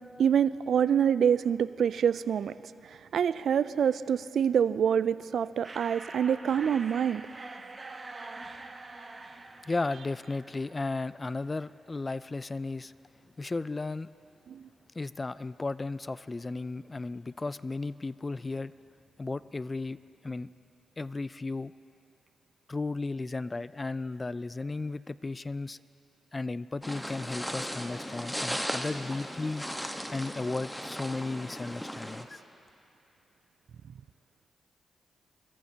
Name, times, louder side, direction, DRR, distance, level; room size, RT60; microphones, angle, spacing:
voice 1, 0.2-2.5 3.1-7.2 14.5-14.6, right 8 dB, 70° right, 16 dB, 0.3 m, -26 dB
sound 1, 5.6-11.2, right 3 dB, 40° right, 1.1 m, -45 dB
voice 2, 9.7-12.9 13.4-14.1 15.0-18.7 19.2-20.0 20.2-20.5 21.0-21.7 22.7-25.8 26.3-29.6 30.1-32.4, left 3 dB, 35° left, 17 dB, 0.4 m, -34 dB
sound 2, 26.8-32.2, equal, 5° left, 1.2 m, -37 dB
25.0 x 14.5 x 2.8 m, 2.7 s
supercardioid pair, 45°, 0 cm